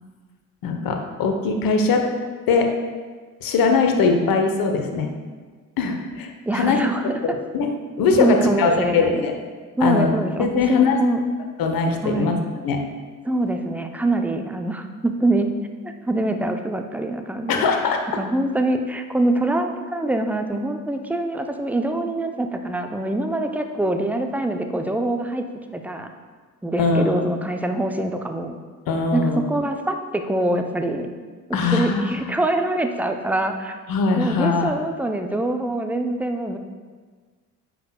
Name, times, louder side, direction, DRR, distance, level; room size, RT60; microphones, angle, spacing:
voice 1, 0.6-2.1 2.5-2.7 3.4-5.1 5.8-9.3 9.8-10.1 10.4-11.0 11.6-12.4 12.6-12.8 17.5-18.0 26.8-27.2 28.9-29.4 31.5-32.3 33.9-34.7, left 4 dB, 50° left, 4 dB, 1.0 m, -21 dB
voice 2, 6.5-7.4 8.2-9.2 9.8-11.2 12.0-12.4 13.2-15.5 15.8-17.7 18.2-25.4 25.7-26.1 26.6-28.5 29.1-31.1 31.5-33.8 34.2-36.6, right 1 dB, 5° right, 5 dB, 0.5 m, -24 dB
9.1 x 5.8 x 2.3 m, 1.5 s
figure-of-eight pair, 50°, 44 cm